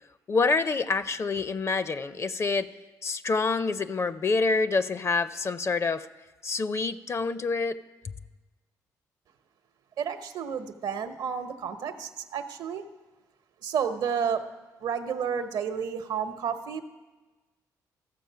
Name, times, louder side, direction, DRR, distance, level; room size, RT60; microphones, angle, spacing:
voice 1, 0.3-2.7 3.0-6.1 6.4-7.8, left 4 dB, 40° left, 14 dB, 0.5 m, -27 dB
voice 2, 10.0-12.9 13.6-14.5 14.8-16.8, right 7 dB, 75° right, 9 dB, 0.9 m, -31 dB
14.0 x 7.0 x 5.7 m, 1.2 s
supercardioid pair, 70°, 7 cm